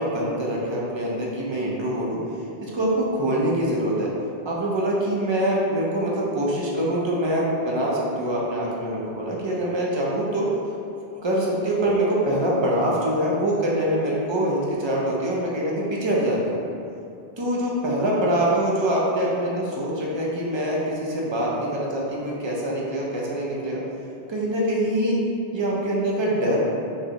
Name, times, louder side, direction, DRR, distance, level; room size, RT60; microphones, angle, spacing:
voice 1, 0.0-2.1 2.6-4.1 4.4-10.5 11.2-16.6 17.4-23.8 24.3-25.2 25.5-26.6, right 1 dB, 35° right, -5 dB, 0.5 m, -24 dB
4.6 x 2.1 x 2.8 m, 2.6 s
omnidirectional pair, 1.1 m